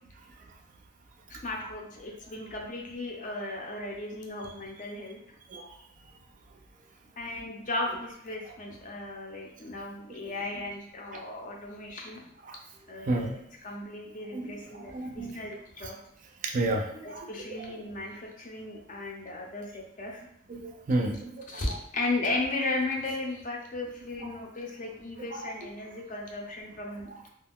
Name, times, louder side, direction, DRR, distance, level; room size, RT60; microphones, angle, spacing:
voice 1, 1.3-5.2 7.2-12.2 12.9-16.0 17.0-20.2 21.5-27.1, left 2 dB, 45° left, 0 dB, 0.5 m, -35 dB
voice 2, 14.8-15.4 16.4-17.3 20.5-21.5, right 2 dB, 45° right, 3 dB, 0.4 m, -31 dB
2.3 x 2.2 x 3.5 m, 0.73 s
head